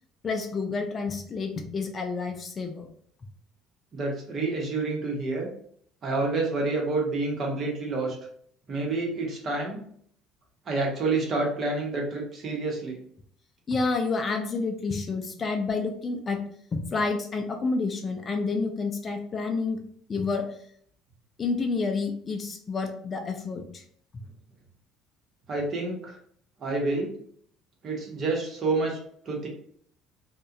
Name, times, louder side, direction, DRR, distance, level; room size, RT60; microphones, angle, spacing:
voice 1, 0.2-2.9 13.7-16.4 16.7-19.8 20.1-20.5 21.4-23.8, left 4 dB, 30° left, 4 dB, 0.3 m, -29 dB
voice 2, 3.9-5.5 6.0-8.2 8.7-9.8 10.7-13.0 25.5-26.2 26.6-27.1 27.8-29.0 29.3-29.5, right 3 dB, 40° right, 0 dB, 0.8 m, -28 dB
2.3 x 2.1 x 2.7 m, 0.62 s
cardioid pair, 115°, 0 cm